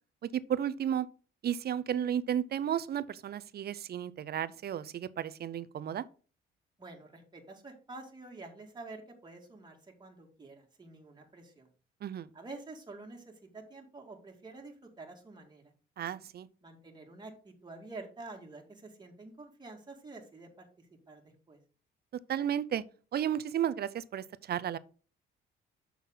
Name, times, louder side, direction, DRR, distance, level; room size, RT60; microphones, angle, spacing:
voice 1, 0.2-1.1 1.4-6.0 12.0-12.3 16.0-16.5 22.3-22.8 23.1-24.8, right 9 dB, 55° right, 0.5 m, -33 dB
voice 2, 6.8-11.7 12.3-15.6 16.6-21.2 21.5-21.6, right 3 dB, 20° right, 2.1 m, -48 dB
7.2 x 5.8 x 3.8 m
cardioid pair, 90°, 20 cm